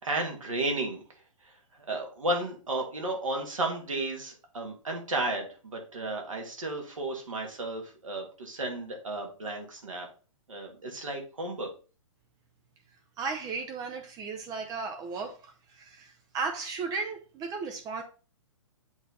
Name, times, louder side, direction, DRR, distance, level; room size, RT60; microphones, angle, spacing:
voice 1, 0.0-1.0 1.4-1.5 1.9-10.1 10.5-11.7, right 2 dB, 75° right, 2.3 m, -33 dB
voice 2, 13.2-18.0, right 4 dB, 20° right, 0.8 m, -35 dB
7.9 x 3.5 x 4.1 m
figure-of-eight pair, 120°, 17 cm